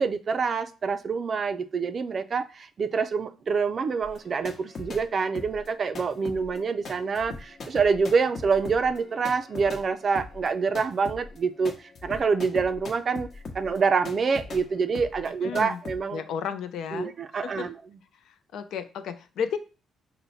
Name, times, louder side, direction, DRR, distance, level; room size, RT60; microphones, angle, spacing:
voice 1, 0.0-11.7 12.0-13.3 13.5-16.2 16.9-17.8, right 5 dB, 45° right, 11 dB, 0.4 m, -26 dB
sound 1, 4.0-5.1 5.3-14.7 14.9-15.3 15.5-16.0, left 3 dB, 55° left, 0.9 m, -40 dB
voice 2, 15.4-15.8 16.1-17.7 18.2-19.6, left 7 dB, 75° left, 10 dB, 0.5 m, -33 dB
5.6 x 2.1 x 4.0 m, 0.33 s
cardioid pair, 90°, 0 cm